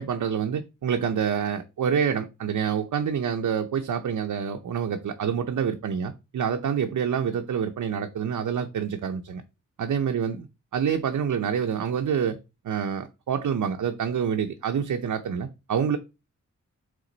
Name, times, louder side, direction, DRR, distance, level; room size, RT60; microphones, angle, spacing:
voice 1, 0.0-9.4 9.8-12.4 12.6-16.0, right 7 dB, 85° right, 0.7 m, -27 dB
8.3 x 3.7 x 3.9 m
wide cardioid pair, 175°, 30 cm